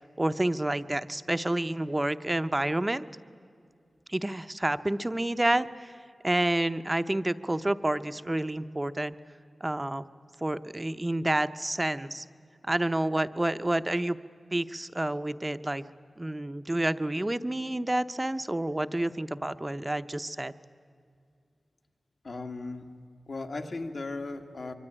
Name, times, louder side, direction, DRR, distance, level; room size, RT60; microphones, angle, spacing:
voice 1, 0.2-3.1 4.1-5.9 6.2-9.2 9.6-10.0 10.4-12.2 12.7-14.2 14.5-15.9 16.2-20.5, right 1 dB, 20° right, 12 dB, 0.7 m, -29 dB
voice 2, 22.2-22.8 23.3-24.7, left 3 dB, 60° left, 5 dB, 1.9 m, -36 dB
24.5 x 24.0 x 9.9 m, 2.4 s
wide cardioid pair, 100°, 0 cm